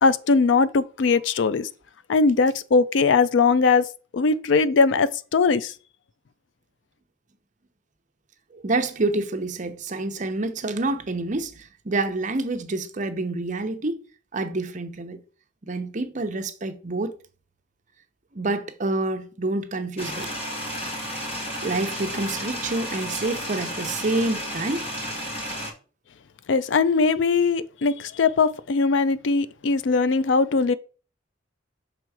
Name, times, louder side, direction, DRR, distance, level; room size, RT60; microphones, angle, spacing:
voice 1, 0.0-1.7 2.1-3.9 4.1-5.7 26.5-30.7, left 4 dB, 75° left, 0.4 m, -20 dB
voice 2, 8.5-14.0 14.3-15.2 15.7-17.1 18.3-20.3 21.6-24.9, right 2 dB, 40° right, 0.7 m, -27 dB
sound 1, 20.0-25.7, equal, 30° left, 1.4 m, -32 dB
6.0 x 3.5 x 4.7 m
head